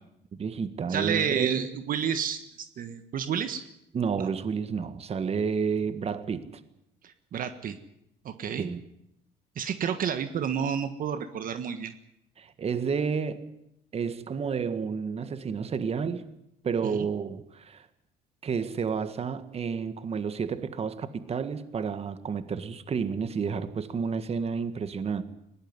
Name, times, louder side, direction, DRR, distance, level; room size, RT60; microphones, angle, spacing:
voice 1, 0.4-1.7 3.9-6.4 8.6-8.8 12.4-13.5 13.9-16.2 16.6-17.9 18.4-25.2, right 6 dB, 35° right, 11 dB, 1.8 m, -30 dB
voice 2, 0.9-3.6 4.2-4.3 7.0-7.8 8.2-8.7 9.5-11.9 16.9-17.1, right 8 dB, 55° right, 10 dB, 1.5 m, -30 dB
21.5 x 18.0 x 9.7 m, 0.79 s
cardioid pair, 110°, 17 cm